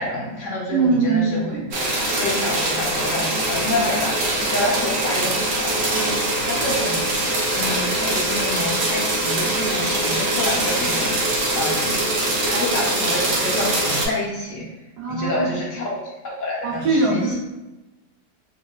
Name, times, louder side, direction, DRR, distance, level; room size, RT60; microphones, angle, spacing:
voice 1, 0.0-1.6 2.2-4.1 4.5-7.0 7.5-12.0 12.5-14.6 15.1-17.3, left 1 dB, 65° left, -4 dB, 0.9 m, -28 dB
voice 2, 0.7-1.7 3.8-4.1 11.9-12.0 15.0-15.5 16.6-17.4, right 3 dB, 90° right, -3 dB, 1.4 m, -22 dB
sound 1, 1.7-14.1, right 1 dB, 60° right, 0.7 m, -23 dB
3.5 x 2.4 x 2.2 m, 1.0 s
omnidirectional pair, 1.7 m